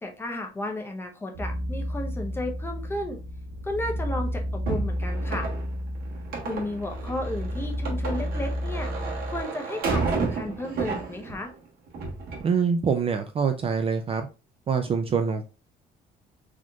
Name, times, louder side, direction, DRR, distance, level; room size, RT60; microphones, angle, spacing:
voice 1, 0.0-3.2 3.6-5.5 6.4-8.9 9.3-11.5, left 1 dB, 15° left, 2 dB, 0.8 m, -33 dB
sound 1, 1.3-9.4, equal, 80° right, 1.1 m, -32 dB
sound 2, 4.7-11.5 11.9-12.5, right 4 dB, 65° right, 1.3 m, -31 dB
voice 2, 12.4-14.3 14.7-15.5, right 6 dB, 35° right, 7 dB, 0.4 m, -25 dB
4.1 x 3.0 x 2.4 m, 0.31 s
cardioid pair, 110°, 17 cm